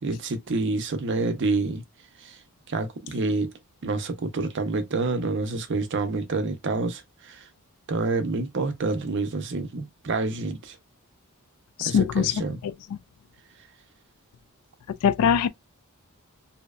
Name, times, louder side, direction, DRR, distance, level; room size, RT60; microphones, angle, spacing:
voice 1, 0.0-1.8 2.2-2.4 2.7-3.5 3.8-7.5 7.9-10.8 11.8-12.6, right 3 dB, 55° right, 0.5 m, -28 dB
voice 2, 11.8-13.0 14.9-15.5, left 7 dB, 85° left, 0.3 m, -23 dB
2.7 x 2.1 x 2.3 m
head